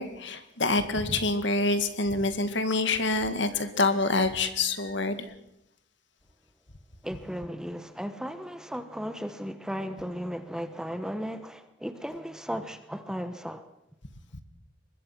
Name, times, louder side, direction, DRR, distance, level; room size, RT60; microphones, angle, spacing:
voice 1, 0.0-5.3 14.3-14.4, left 3 dB, 60° left, 2.0 m, -26 dB
voice 2, 7.0-13.7, equal, 5° right, 1.0 m, -35 dB
23.5 x 21.0 x 6.0 m
head